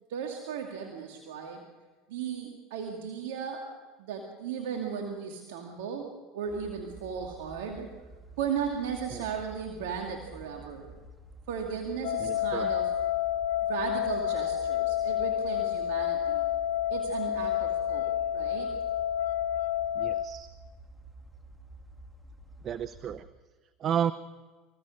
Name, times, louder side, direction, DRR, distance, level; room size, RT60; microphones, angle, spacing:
voice 1, 0.1-1.6 2.1-3.7 4.0-7.9 8.4-10.9 11.5-12.9 13.6-16.5 16.9-18.7, right 7 dB, 75° right, 2 dB, 2.4 m, -36 dB
sound 1, 6.5-23.2, right 2 dB, 5° right, 2.5 m, -50 dB
sound 2, 12.0-20.2, left 11 dB, 75° left, 1.2 m, -29 dB
voice 2, 12.2-12.7 20.0-20.5 22.6-23.3 23.8-24.1, right 9 dB, 45° right, 14 dB, 0.8 m, -32 dB
25.5 x 16.5 x 6.4 m, 1.4 s
hypercardioid pair, 85°, 0 cm